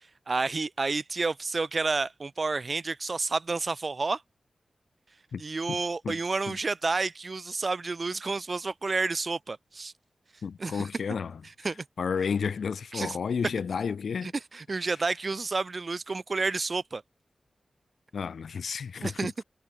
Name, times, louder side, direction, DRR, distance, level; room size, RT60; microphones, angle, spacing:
voice 1, 0.3-4.2 5.4-9.9 10.6-10.8 11.6-11.8 12.9-13.1 14.2-17.0 19.0-19.4, right 3 dB, 50° right, 0.9 m, -30 dB
voice 2, 5.7-6.2 6.5-6.6 10.4-11.4 12.0-14.3 14.8-14.9 18.1-19.3, left 6 dB, 85° left, 0.4 m, -32 dB
cardioid pair, 65°, 0 cm